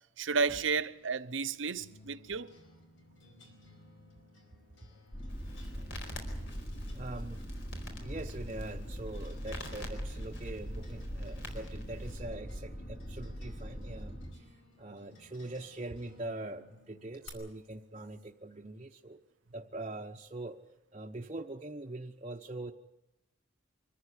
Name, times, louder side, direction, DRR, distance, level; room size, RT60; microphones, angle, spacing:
voice 1, 0.2-2.5, right 5 dB, 75° right, 0.9 m, -32 dB
sound 1, 0.8-17.3, left 2 dB, 90° left, 4.8 m, -59 dB
sound 2, 5.1-14.3, equal, 50° left, 3.7 m, -42 dB
Crackle, 5.3-12.2, equal, 70° left, 4.6 m, -47 dB
voice 2, 5.8-6.2 6.9-7.4 8.0-14.4 14.8-19.2 19.5-20.6 20.9-22.7, right 2 dB, 30° right, 0.9 m, -43 dB
25.0 x 14.5 x 9.8 m
head